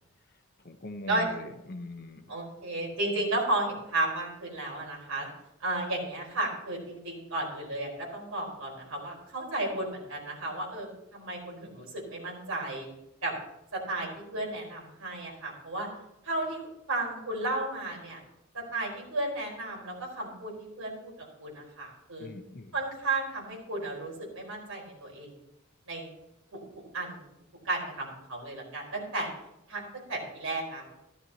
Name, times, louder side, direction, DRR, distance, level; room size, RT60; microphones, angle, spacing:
voice 1, 0.6-2.3 22.2-22.7, left 2 dB, 45° left, 7 dB, 0.9 m, -41 dB
voice 2, 2.3-5.3 5.6-12.9 13.2-13.3 13.7-15.9 16.2-16.6 16.9-18.2 18.5-21.1 21.4-22.3 22.7-25.3 25.9-26.1 26.5-26.6 26.9-27.2 27.6-29.3 29.7-30.9, right 2 dB, 80° right, -1 dB, 4.3 m, -33 dB
14.0 x 12.5 x 2.9 m, 0.84 s
head